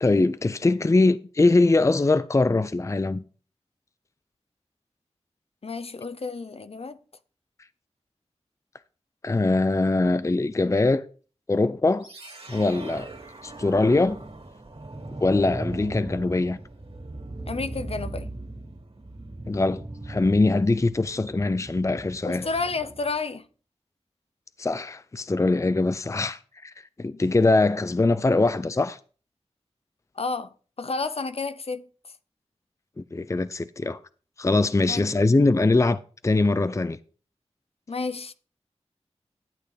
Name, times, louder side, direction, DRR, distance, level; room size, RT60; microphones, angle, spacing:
voice 1, 0.0-3.2 9.2-11.1 11.5-12.1 12.5-13.1 13.4-14.2 15.2-16.6 19.5-22.5 24.6-29.0 33.0-34.0 34.4-37.0, left 2 dB, 25° left, 0.5 m, -22 dB
voice 2, 5.6-7.0 17.5-18.3 22.2-23.5 27.1-27.2 30.1-32.1 34.9-35.1 37.9-38.3, left 4 dB, 60° left, 0.7 m, -31 dB
sound 1, 12.0-23.1, right 2 dB, 55° right, 2.4 m, -39 dB
11.5 x 8.5 x 3.4 m
wide cardioid pair, 55°, 12 cm